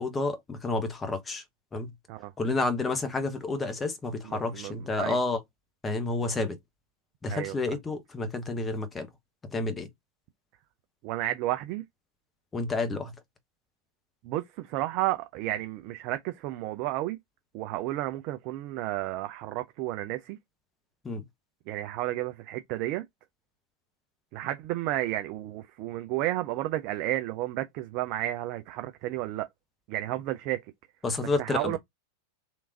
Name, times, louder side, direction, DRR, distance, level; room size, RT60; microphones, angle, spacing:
voice 1, 0.0-1.4 1.7-1.9 2.4-5.4 5.8-6.6 7.2-9.1 9.5-9.9 12.5-13.1 21.0-21.2 31.0-31.8, left 3 dB, 15° left, 0.9 m, -30 dB
voice 2, 4.2-5.2 7.3-7.6 11.0-11.8 14.2-17.2 17.5-20.4 21.7-23.0 24.3-29.5 29.9-30.6 31.4-31.8, right 15 dB, 45° right, 0.4 m, -32 dB
3.4 x 3.0 x 2.5 m
figure-of-eight pair, 90°, 0 cm